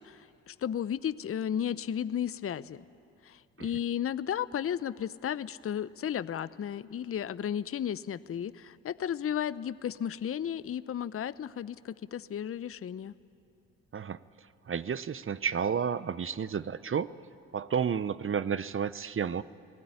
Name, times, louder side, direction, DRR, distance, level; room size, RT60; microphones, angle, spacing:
voice 1, 0.0-2.8 3.2-13.1, left 9 dB, 35° left, 17 dB, 0.8 m, -34 dB
voice 2, 14.7-17.1 17.5-19.4, right 7 dB, 35° right, 16 dB, 0.8 m, -31 dB
30.0 x 19.0 x 9.8 m, 2.5 s
hypercardioid pair, 50°, 37 cm